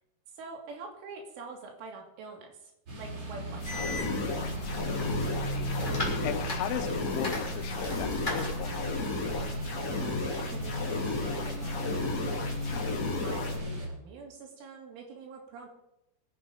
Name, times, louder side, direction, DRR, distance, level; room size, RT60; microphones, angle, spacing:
voice 1, 0.3-2.7 3.0-4.0 9.9-12.3 13.0-15.7, right 4 dB, 75° right, 1 dB, 5.0 m, -45 dB
sound 1, 2.9-13.9, equal, 35° right, 4.3 m, -35 dB
sound 2, 3.6-13.6, left 3 dB, 40° left, 3.3 m, -35 dB
sound 3, 3.7-9.5, left 1 dB, 10° left, 2.7 m, -39 dB
voice 2, 4.6-8.9 12.7-13.0, left 10 dB, 80° left, 11 dB, 3.1 m, -39 dB
22.5 x 8.9 x 5.0 m, 0.85 s
omnidirectional pair, 5.7 m